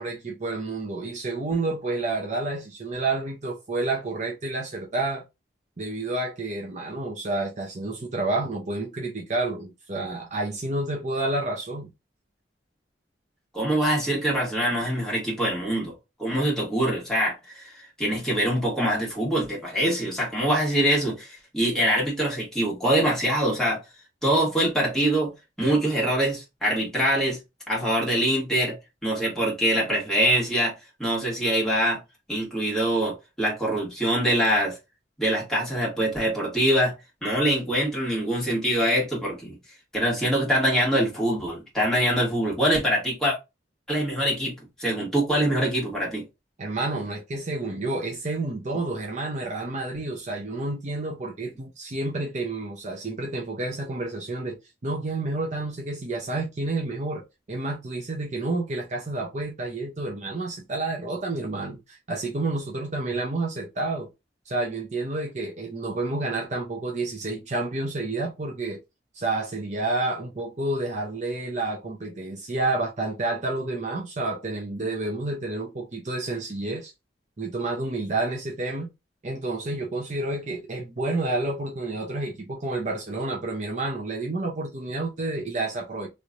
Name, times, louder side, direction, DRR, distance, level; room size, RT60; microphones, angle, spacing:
voice 1, 0.0-5.2 5.8-11.9 46.6-54.6 54.8-64.1 64.5-68.8 69.1-76.9 77.4-78.9 79.2-86.1, right 2 dB, 40° right, 0.6 m, -29 dB
voice 2, 13.5-15.9 16.2-23.8 24.2-25.3 25.6-27.4 27.7-28.8 29.0-30.7 31.0-32.0 32.3-34.8 35.2-36.9 37.2-39.5 39.9-43.4 43.9-44.5 44.8-46.2, right 1 dB, 5° left, 1.8 m, -24 dB
3.1 x 3.1 x 2.5 m
head